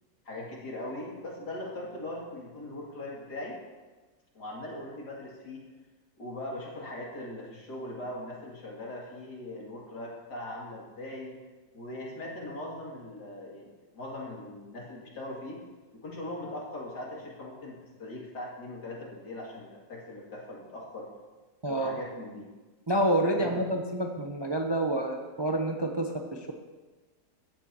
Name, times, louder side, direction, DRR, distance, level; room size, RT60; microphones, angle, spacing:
voice 1, 0.2-3.6 4.3-5.6 6.2-11.4 11.7-15.6 15.9-21.1 21.7-22.5 23.3-23.6, left 1 dB, 75° left, -3 dB, 3.1 m, -40 dB
voice 2, 21.6-22.0 22.9-26.5, right 1 dB, 25° right, 2 dB, 0.5 m, -28 dB
15.0 x 11.0 x 2.9 m, 1.3 s
omnidirectional pair, 1.8 m